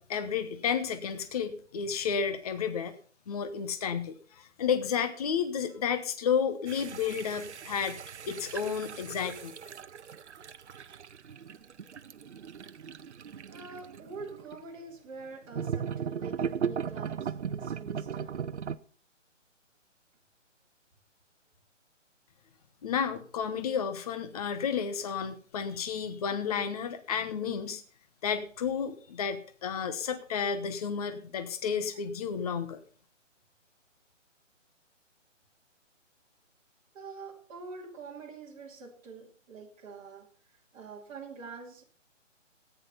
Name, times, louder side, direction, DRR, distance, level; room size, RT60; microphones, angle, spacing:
voice 1, 0.0-3.0 3.3-8.0 8.3-9.5 22.8-27.8 28.2-32.8, left 7 dB, 30° left, 1.0 m, -31 dB
sound 1, 6.7-14.6 15.5-18.8, right 7 dB, 65° right, 0.8 m, -38 dB
voice 2, 13.5-18.4 36.9-40.3 40.7-41.8, right 4 dB, 25° right, 2.6 m, -45 dB
14.5 x 9.5 x 5.6 m
hypercardioid pair, 155°, 38 cm